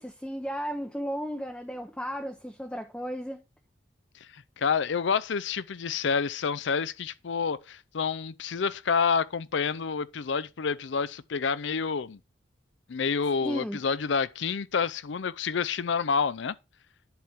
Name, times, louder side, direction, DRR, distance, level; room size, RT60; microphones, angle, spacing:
voice 1, 0.0-3.4 13.4-13.8, equal, 5° left, 0.6 m, -34 dB
voice 2, 4.3-12.2 12.9-16.6, left 5 dB, 75° left, 0.5 m, -28 dB
10.5 x 4.4 x 3.6 m
head